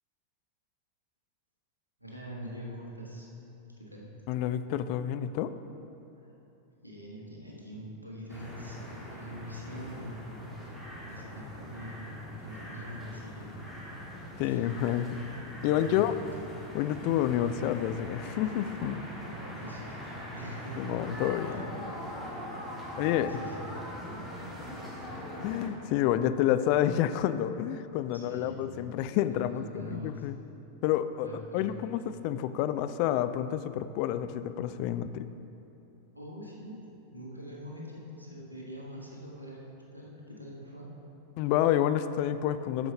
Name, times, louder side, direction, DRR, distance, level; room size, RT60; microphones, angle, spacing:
voice 1, 2.0-3.3 3.8-4.1 6.2-6.3 6.8-10.6 11.0-13.6 14.4-14.7 15.7-16.2 19.3-21.0 21.4-21.6 23.1-24.2 24.7-24.8 28.1-28.8 29.3-30.3 31.2-32.1 36.1-36.8 37.1-39.6 39.9-40.9, equal, 85° right, -3 dB, 1.3 m, -44 dB
voice 2, 4.3-5.5 14.4-15.2 15.6-16.1 16.7-19.0 20.8-21.7 23.0-23.3 25.4-30.4 30.8-35.2 41.4-42.9, left 11 dB, 45° left, 12 dB, 0.3 m, -29 dB
sound 1, 8.3-25.7, equal, ahead, 1.7 m, -42 dB
9.2 x 6.9 x 3.8 m, 2.9 s
figure-of-eight pair, 90°, 0 cm